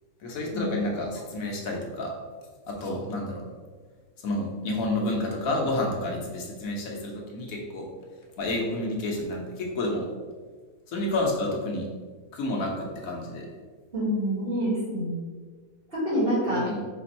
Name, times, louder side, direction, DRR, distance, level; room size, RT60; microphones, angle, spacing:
voice 1, 0.2-2.1 2.8-3.4 4.2-7.8 8.4-10.0 10.9-11.8 12.3-13.4 16.5-16.8, left 1 dB, 75° left, -1 dB, 1.2 m, -30 dB
voice 2, 13.9-15.2 15.9-16.7, equal, 40° right, -8 dB, 1.9 m, -26 dB
4.3 x 2.6 x 4.1 m, 1.5 s
omnidirectional pair, 1.5 m